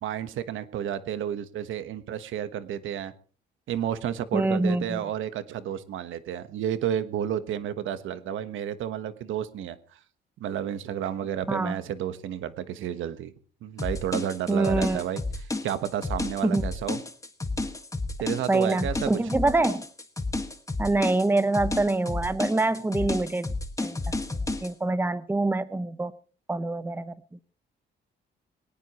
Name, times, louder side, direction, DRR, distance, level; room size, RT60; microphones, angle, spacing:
voice 1, 0.0-3.1 3.7-10.0 10.4-13.3 13.6-15.2 15.6-17.0 18.2-19.2, right 10 dB, 80° right, 12 dB, 1.3 m, -31 dB
voice 2, 4.3-5.0 11.5-11.8 14.5-15.0 16.4-16.6 18.5-19.9 20.8-23.5 23.8-24.2 24.6-26.2 26.5-27.4, right 2 dB, 10° right, 14 dB, 0.9 m, -25 dB
sound 1, 13.8-24.7, left 2 dB, 15° left, 1.6 m, -31 dB
20.0 x 18.0 x 3.0 m, 0.41 s
cardioid pair, 90°, 20 cm